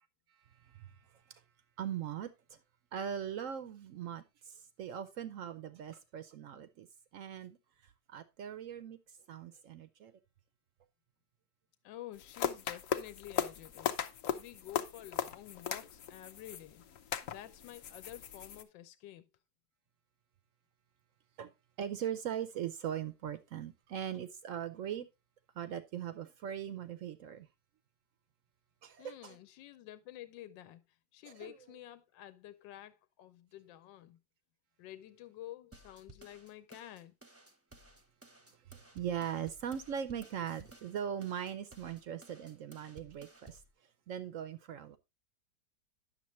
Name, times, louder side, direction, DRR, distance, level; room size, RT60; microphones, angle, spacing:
voice 1, 0.6-1.0 1.3-1.4 1.8-2.6 2.9-6.9 7.1-7.6 7.8-9.0 9.3-10.1 21.4-21.5 21.8-25.1 25.6-27.5 28.8-29.4 31.2-31.5 38.7-43.6 44.1-45.0, right 9 dB, 70° right, 0.7 m, -40 dB
voice 2, 11.8-16.8 17.3-19.3 29.0-30.8 31.1-34.2 34.8-37.1, left 13 dB, 85° left, 1.4 m, -50 dB
sound 1, 12.1-18.6, left 9 dB, 60° left, 0.9 m, -38 dB
sound 2, 35.7-43.7, right 2 dB, 15° right, 0.5 m, -57 dB
10.0 x 6.7 x 3.0 m
omnidirectional pair, 2.0 m